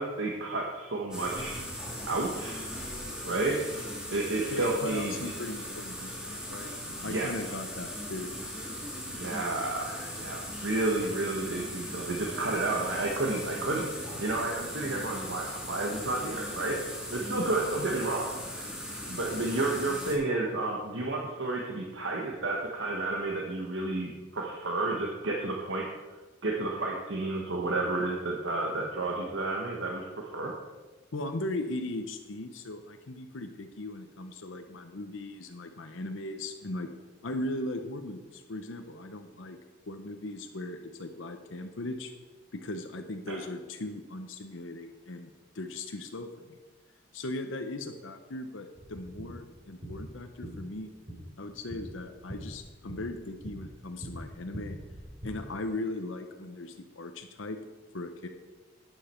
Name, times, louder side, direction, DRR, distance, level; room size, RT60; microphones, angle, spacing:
voice 1, 0.0-1.5 2.1-2.7 3.2-5.1 6.9-7.3 9.1-13.9 14.2-16.8 17.1-18.3 19.1-25.8 26.4-30.5 43.3-43.4, right 2 dB, 70° right, -1 dB, 1.3 m, -31 dB
sound 1, 1.1-20.2, equal, 5° right, 2.0 m, -39 dB
voice 2, 4.5-6.7 7.0-8.3 31.1-36.9 37.2-39.6 39.9-42.1 42.5-46.6 47.1-50.9 51.4-54.8 55.2-57.6 57.9-58.3, left 2 dB, 75° left, 6 dB, 0.8 m, -38 dB
sound 2, 48.8-55.3, equal, 35° right, 3.4 m, -44 dB
11.5 x 9.2 x 4.5 m, 1.3 s
head